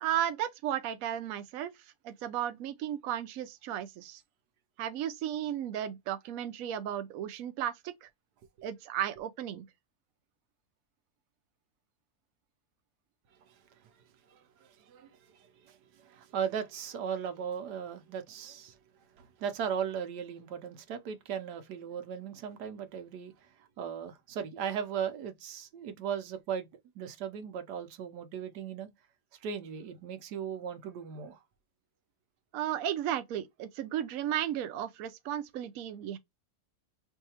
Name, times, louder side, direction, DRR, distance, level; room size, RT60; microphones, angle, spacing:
voice 1, 0.0-1.7 2.0-4.2 4.8-8.1 8.6-9.6 32.5-36.2, right 11 dB, 70° right, 0.9 m, -34 dB
voice 2, 14.3-18.8 19.2-23.5 23.8-26.7 27.0-28.9 29.4-31.4, right 7 dB, 85° right, 1.3 m, -37 dB
4.6 x 2.7 x 2.8 m
omnidirectional pair, 1.7 m